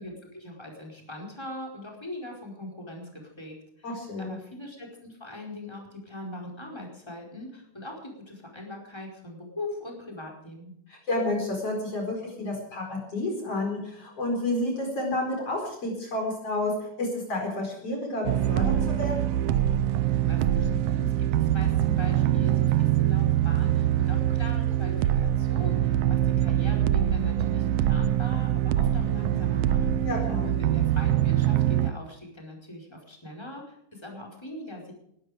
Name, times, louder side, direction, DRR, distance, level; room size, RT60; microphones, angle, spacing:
voice 1, 0.0-10.7 20.0-30.1 30.4-34.9, left 1 dB, 10° left, 0 dB, 4.7 m, -41 dB
voice 2, 3.8-4.3 10.9-19.1 30.0-30.5, left 2 dB, 45° left, 1 dB, 5.5 m, -30 dB
sound 1, 18.2-31.9, right 12 dB, 80° right, 1.4 m, -24 dB
21.0 x 13.0 x 5.1 m, 0.75 s
omnidirectional pair, 3.6 m